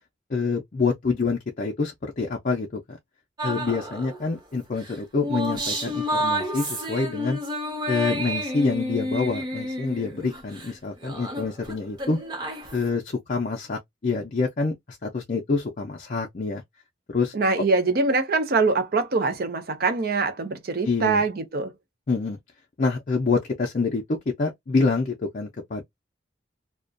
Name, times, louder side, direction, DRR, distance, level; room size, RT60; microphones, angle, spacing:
voice 1, 0.3-3.0 3.4-7.4 7.9-12.2 12.7-16.6 17.1-17.3 20.8-21.2 22.1-22.4 22.8-25.8, left 4 dB, 45° left, 0.4 m, -26 dB
sound 1, 3.4-4.2 4.9-10.7 11.0-12.9, equal, 25° right, 0.8 m, -30 dB
voice 2, 17.3-21.7, right 3 dB, 50° right, 0.5 m, -23 dB
2.4 x 2.1 x 2.4 m
head